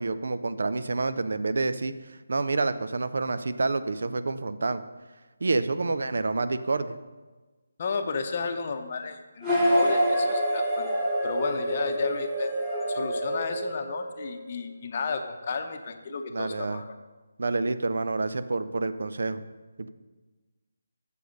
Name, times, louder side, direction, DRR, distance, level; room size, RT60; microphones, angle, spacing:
voice 1, 0.0-4.8 5.4-7.0 16.3-16.8 17.4-19.4 19.8-19.9, right 3 dB, 65° right, 11 dB, 0.4 m, -28 dB
voice 2, 7.8-10.9 11.2-12.5 12.9-16.9, left 4 dB, 40° left, 6 dB, 0.7 m, -33 dB
sound 1, 9.4-14.3, equal, 10° right, 1.5 m, -26 dB
6.7 x 6.7 x 5.2 m, 1.3 s
figure-of-eight pair, 155°, 0 cm